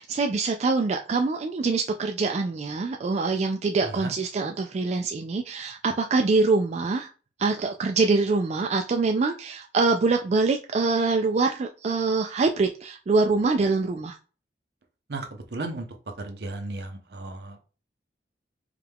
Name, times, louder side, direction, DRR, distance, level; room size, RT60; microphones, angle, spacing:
voice 1, 0.0-7.1 7.4-14.2, right 3 dB, 40° right, 0.3 m, -24 dB
voice 2, 15.1-15.9 16.2-17.6, right 2 dB, 65° right, 0.7 m, -35 dB
4.8 x 2.3 x 3.5 m
head